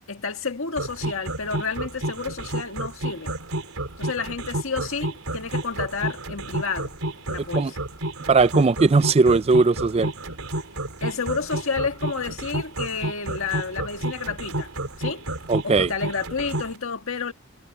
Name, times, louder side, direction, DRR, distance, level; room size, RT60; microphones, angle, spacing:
voice 1, 0.0-3.3 4.0-7.0 7.3-7.8 11.0-14.7 15.0-15.2 15.6-17.3, left 5 dB, 70° left, 1.7 m, -30 dB
sound 1, 0.8-16.7, right 1 dB, 90° right, 4.1 m, -30 dB
voice 2, 8.3-10.1 15.5-15.9, right 4 dB, 30° right, 0.3 m, -18 dB
head